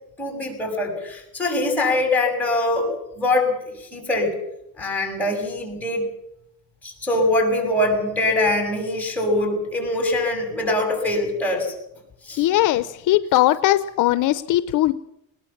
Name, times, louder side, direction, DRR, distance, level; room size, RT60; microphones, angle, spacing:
voice 1, 0.2-2.9 3.2-4.3 4.8-6.0 6.8-11.7 12.3-12.4, left 2 dB, 5° left, 2 dB, 6.5 m, -23 dB
voice 2, 12.4-14.9, left 14 dB, 60° left, 13 dB, 0.7 m, -19 dB
21.0 x 19.0 x 7.3 m, 0.82 s
cardioid pair, 155°, 35 cm